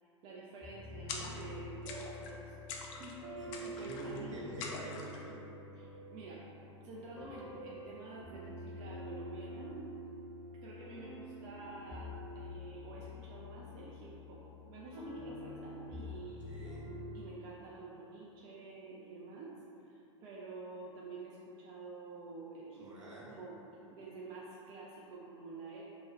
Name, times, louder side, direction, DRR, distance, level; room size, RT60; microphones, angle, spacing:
voice 1, 0.2-2.6 2.9-4.5 5.7-6.5 6.8-10.2 10.6-16.6 17.1-19.6 19.9-23.6 23.9-25.9, right 3 dB, 40° right, -5 dB, 0.4 m, -49 dB
sound 1, 0.6-17.2, left 1 dB, 5° right, 0.8 m, -47 dB
sound 2, 1.1-1.6 1.8-2.4 2.7-3.2 3.5-4.2 4.6-5.2, left 4 dB, 45° left, 0.4 m, -44 dB
voice 2, 3.4-5.4 16.5-16.9 22.7-23.3, right 1 dB, 80° right, -6 dB, 0.7 m, -47 dB
2.2 x 2.0 x 3.6 m, 2.9 s
figure-of-eight pair, 85°, 16 cm